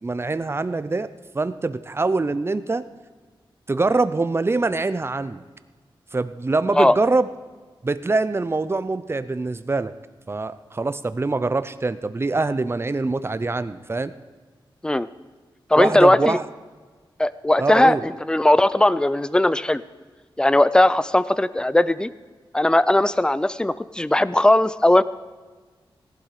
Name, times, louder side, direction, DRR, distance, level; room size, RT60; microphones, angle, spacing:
voice 1, 0.0-1.1 1.3-2.8 3.7-5.4 6.1-7.3 7.8-9.9 10.3-14.1 15.8-16.5 17.6-18.1, right 3 dB, 30° right, 13 dB, 0.7 m, -24 dB
voice 2, 15.7-16.4 17.2-19.8 20.4-22.1 22.5-25.0, left 1 dB, 10° left, 16 dB, 0.5 m, -18 dB
17.5 x 11.5 x 4.9 m, 1.4 s
wide cardioid pair, 95°, 9 cm